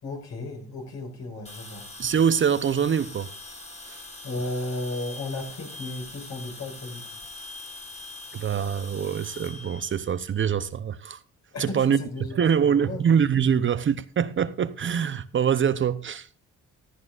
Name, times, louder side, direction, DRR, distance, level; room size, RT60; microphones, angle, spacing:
voice 1, 0.0-1.8 4.2-7.0 11.5-13.1, left 2 dB, 60° left, 5.5 m, -34 dB
sound 1, 1.4-10.7, left 2 dB, 20° left, 2.4 m, -43 dB
voice 2, 2.0-3.3 3.9-4.0 8.3-11.2 11.6-12.0 12.3-16.3, right 7 dB, 40° right, 0.7 m, -24 dB
15.0 x 14.0 x 2.5 m
cardioid pair, 90°, 30 cm